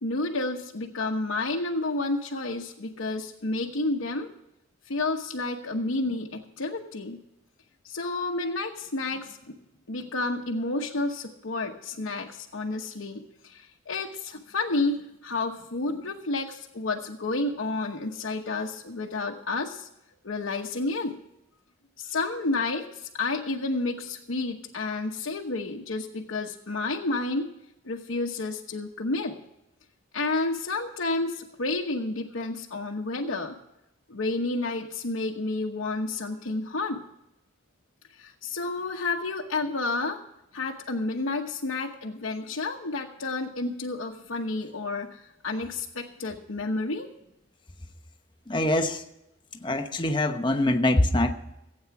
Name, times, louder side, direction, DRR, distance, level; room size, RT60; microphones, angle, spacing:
voice 1, 0.0-4.3 4.9-7.2 7.8-9.5 9.9-19.9 20.2-21.2 22.0-27.5 27.8-29.3 30.1-33.6 34.1-37.0 38.2-40.2 40.5-47.1, left 2 dB, 85° left, -1 dB, 1.1 m, -30 dB
voice 2, 48.5-49.0 49.6-51.3, left 1 dB, 25° left, 6 dB, 0.9 m, -24 dB
16.0 x 8.7 x 5.9 m, 0.87 s
head